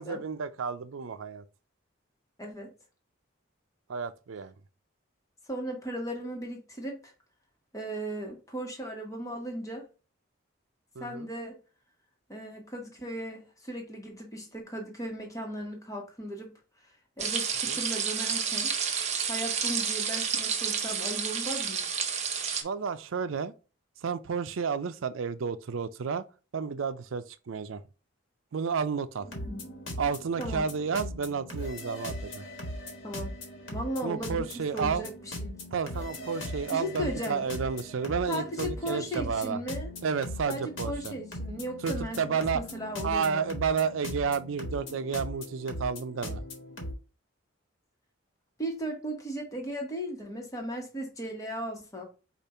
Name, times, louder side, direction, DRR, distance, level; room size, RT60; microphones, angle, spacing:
voice 1, 0.0-1.4 3.9-4.5 11.0-11.3 17.7-17.8 22.6-23.5 24.0-26.3 26.5-27.8 28.5-29.3 30.0-32.4 34.0-35.1 35.7-39.6 40.0-41.1 41.8-42.6 43.0-46.4, right 6 dB, 85° right, 0.5 m, -31 dB
voice 2, 2.4-2.7 5.5-7.1 7.7-9.9 11.0-11.6 12.3-16.5 17.2-18.7 19.3-21.9 29.2-29.7 30.4-30.6 33.0-33.3 33.7-35.6 36.7-37.5 38.3-39.9 40.5-43.5 48.6-52.1, equal, 15° left, 1.2 m, -36 dB
sound 1, 17.2-22.6, right 7 dB, 35° right, 0.7 m, -30 dB
sound 2, 29.2-46.9, left 1 dB, 75° left, 1.4 m, -39 dB
5.2 x 2.5 x 4.2 m
head